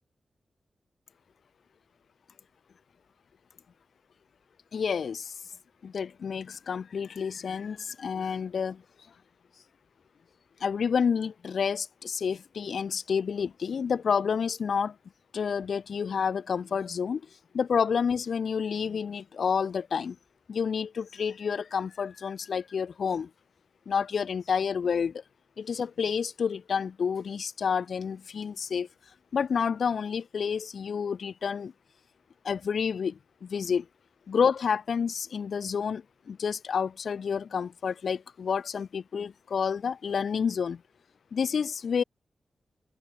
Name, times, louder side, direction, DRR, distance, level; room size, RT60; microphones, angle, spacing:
voice 1, 4.7-5.3 5.8-8.8 10.6-15.0 15.3-17.2 17.5-20.2 20.5-23.3 23.9-25.2 25.6-28.9 29.3-31.7 32.4-33.9 34.3-40.8 41.3-42.0, left 6 dB, 75° left, 0.6 m, -29 dB
wide cardioid pair, 120°, 0 cm